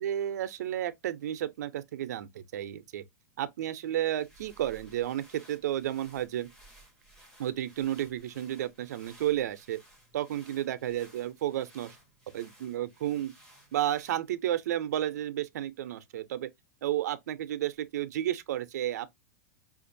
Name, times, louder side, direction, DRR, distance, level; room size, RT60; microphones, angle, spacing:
voice 1, 0.0-3.0 3.4-6.5 7.4-9.8 10.1-12.0 12.3-13.3 13.7-16.5 16.8-19.1, right 12 dB, 75° right, 0.5 m, -32 dB
sound 1, 3.8-14.5, right 1 dB, 5° left, 0.8 m, -58 dB
5.0 x 2.4 x 2.6 m
supercardioid pair, 180°, 9 cm